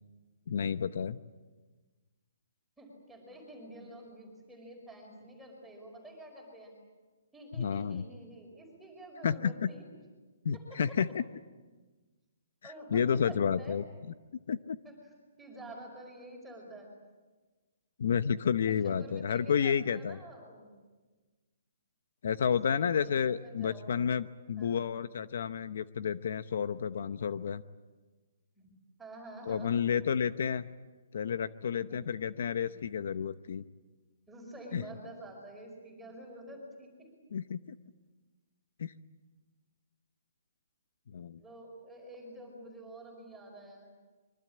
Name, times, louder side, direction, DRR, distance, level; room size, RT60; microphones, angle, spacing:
voice 1, 0.5-1.2 7.6-8.0 9.2-9.7 10.4-11.2 12.9-13.8 14.5-14.8 18.0-20.2 22.2-27.6 29.5-30.7 31.1-33.6 34.7-34.8 37.3-37.6 38.8-38.9 41.1-41.4, left 7 dB, 55° left, 13 dB, 0.8 m, -30 dB
voice 2, 2.8-6.7 7.3-9.8 10.5-11.0 12.6-13.8 14.8-16.9 18.7-20.7 22.5-24.1 24.6-25.0 28.6-28.7 29.0-29.8 31.7-32.0 32.7-32.8 34.3-37.1 41.4-43.9, right 1 dB, 5° right, -1 dB, 5.3 m, -48 dB
25.0 x 24.0 x 8.6 m, 1.3 s
hypercardioid pair, 175°, 0 cm